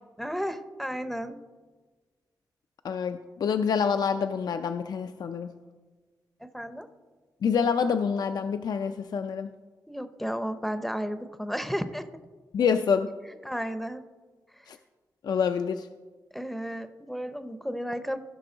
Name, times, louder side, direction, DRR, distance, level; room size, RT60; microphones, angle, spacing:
voice 1, 0.2-1.4 6.4-6.9 9.9-12.1 13.4-14.0 14.6-14.7 16.3-18.2, equal, ahead, 10 dB, 0.6 m, -33 dB
voice 2, 2.8-5.5 7.4-9.5 12.5-13.1 14.7-14.8 15.2-15.9, left 6 dB, 70° left, 8 dB, 0.4 m, -27 dB
15.5 x 6.2 x 3.9 m, 1.3 s
wide cardioid pair, 100°, 7 cm